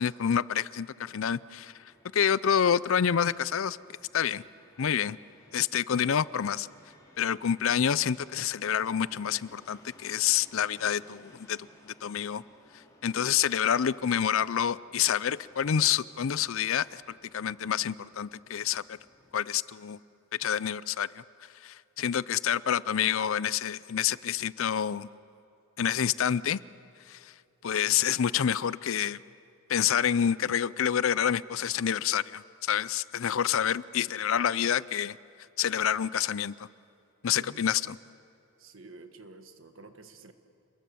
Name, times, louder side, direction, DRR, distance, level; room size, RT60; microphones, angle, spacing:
voice 1, 0.0-1.7 2.1-3.8 4.1-4.4 4.8-5.2 5.5-6.7 7.2-11.6 11.9-12.4 13.0-17.0 17.3-19.0 19.3-20.0 20.4-21.2 21.6-25.1 25.8-26.6 27.1-27.3 27.6-29.2 29.7-35.2 35.6-36.5 37.2-38.0, left 8 dB, 65° left, 19 dB, 0.5 m, -28 dB
Fixed-wing aircraft airplane, 1.5-19.5, left 1 dB, 15° left, 4.2 m, -59 dB
voice 2, 37.3-37.7 38.6-40.3, right 3 dB, 60° right, 8 dB, 1.6 m, -50 dB
29.0 x 21.5 x 7.0 m, 2.6 s
head